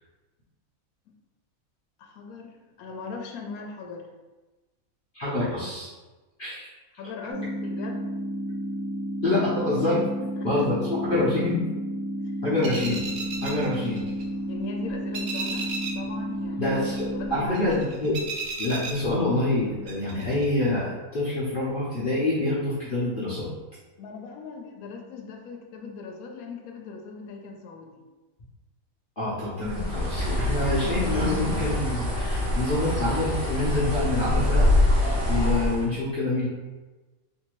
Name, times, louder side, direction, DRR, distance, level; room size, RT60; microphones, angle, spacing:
voice 1, 2.0-4.1 7.0-8.1 10.2-10.5 12.2-12.3 14.5-16.8 17.1-17.7 24.0-28.0, left 4 dB, 85° left, 2 dB, 1.0 m, -40 dB
voice 2, 5.1-5.9 6.4-6.7 9.2-10.0 10.4-11.6 12.4-13.1 13.4-14.1 16.6-18.2 18.6-23.5 29.2-34.7 35.3-36.5, left 2 dB, 45° left, -10 dB, 0.8 m, -26 dB
sound 1, 7.3-17.3, right 1 dB, 25° right, 0.6 m, -32 dB
sound 2, 12.6-14.6 14.9-16.1 16.4-19.6 19.9-20.5, right 4 dB, 75° right, 0.4 m, -35 dB
Bird, 29.6-35.9, left 1 dB, 45° right, 1.1 m, -25 dB
3.2 x 2.7 x 3.0 m, 1.2 s
omnidirectional pair, 1.5 m